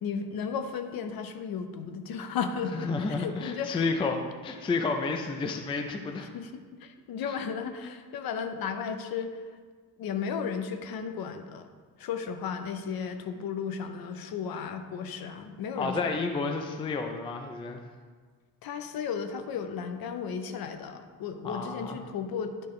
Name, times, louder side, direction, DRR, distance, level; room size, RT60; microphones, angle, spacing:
voice 1, 0.0-4.2 6.3-6.5 6.8-9.4 10.0-11.7 12.0-16.2 18.6-22.7, left 6 dB, 60° left, 7 dB, 0.7 m, -34 dB
voice 2, 2.7-6.3 7.3-7.4 15.8-17.8 21.4-22.0, left 4 dB, 15° left, 4 dB, 0.3 m, -31 dB
9.8 x 4.5 x 3.1 m, 1.5 s
cardioid pair, 135°, 41 cm